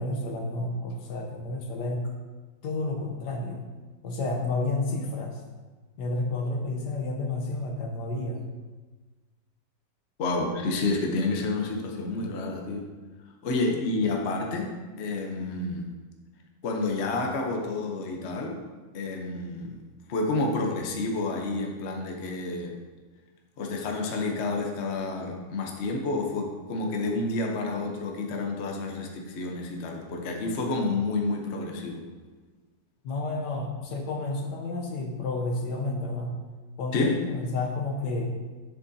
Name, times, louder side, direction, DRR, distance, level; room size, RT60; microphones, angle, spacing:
voice 1, 0.0-2.1 2.6-3.6 4.0-5.4 6.0-8.5 13.7-13.9 33.0-36.4 36.8-38.3, left 2 dB, 70° left, 2 dB, 1.4 m, -31 dB
voice 2, 10.2-12.9 13.4-14.7 15.0-15.9 16.6-18.6 18.9-19.8 20.1-22.7 23.6-32.0 36.9-37.2, left 3 dB, 50° left, 1 dB, 0.9 m, -29 dB
7.9 x 6.7 x 2.7 m, 1.3 s
omnidirectional pair, 1.9 m